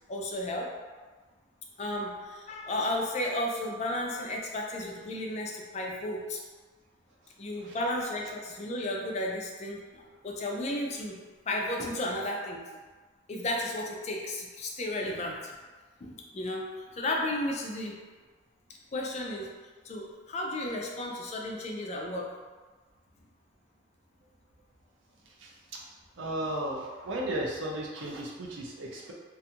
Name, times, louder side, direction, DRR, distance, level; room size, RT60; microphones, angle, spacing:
voice 1, 0.1-0.8 1.8-6.4 7.4-11.2 11.4-12.6 13.3-15.5 16.0-16.7 16.9-18.0 18.9-19.5 19.8-22.3, left 1 dB, 35° left, 0 dB, 0.3 m, -33 dB
voice 2, 26.2-29.1, right 1 dB, 70° right, -2 dB, 0.5 m, -34 dB
2.5 x 2.3 x 2.8 m, 1.4 s
head